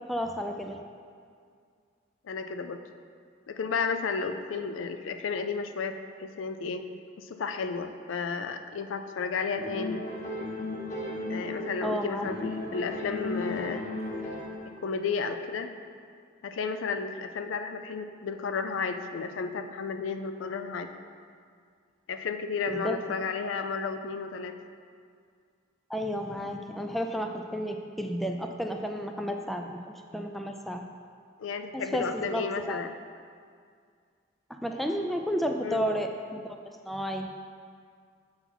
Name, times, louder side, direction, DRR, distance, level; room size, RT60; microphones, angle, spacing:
voice 1, 0.1-0.8 11.8-12.3 22.7-23.0 25.9-30.8 31.7-32.8 34.5-36.6 36.8-37.3, equal, ahead, 3 dB, 0.3 m, -32 dB
voice 2, 2.2-2.8 3.5-6.8 7.2-10.0 11.3-13.9 14.8-15.7 16.4-20.9 22.1-24.5 31.4-32.9 35.6-35.8, left 5 dB, 70° left, 8 dB, 0.4 m, -32 dB
sound 1, 9.6-11.9 12.2-14.7, left 2 dB, 40° left, 1.6 m, -35 dB
6.8 x 4.0 x 6.1 m, 2.1 s
head